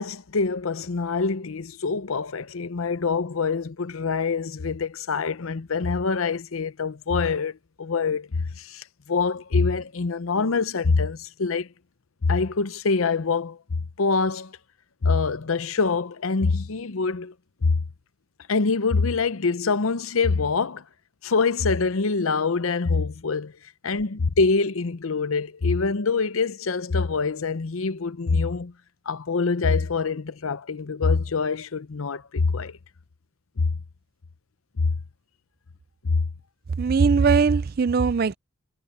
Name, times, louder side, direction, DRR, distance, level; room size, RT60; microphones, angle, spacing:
voice 1, 0.0-11.7 12.2-14.6 15.0-17.3 17.6-17.8 18.5-20.8 21.2-23.5 23.8-28.7 29.1-32.8 33.6-33.7 34.8-34.9 36.0-36.2, left 4 dB, 80° left, 0.7 m, -25 dB
voice 2, 36.8-38.4, right 5 dB, 45° right, 0.4 m, -20 dB
head